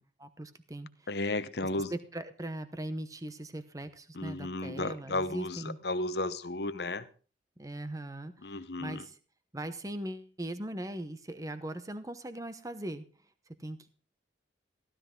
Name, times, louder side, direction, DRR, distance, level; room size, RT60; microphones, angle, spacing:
voice 1, 0.0-1.1 1.6-5.8 7.6-9.2 9.5-13.0 13.5-13.9, right 1 dB, 20° right, 0.9 m, -40 dB
voice 2, 1.1-1.9 4.1-7.1 8.4-9.0, left 2 dB, 65° left, 0.9 m, -34 dB
15.5 x 12.5 x 3.8 m
head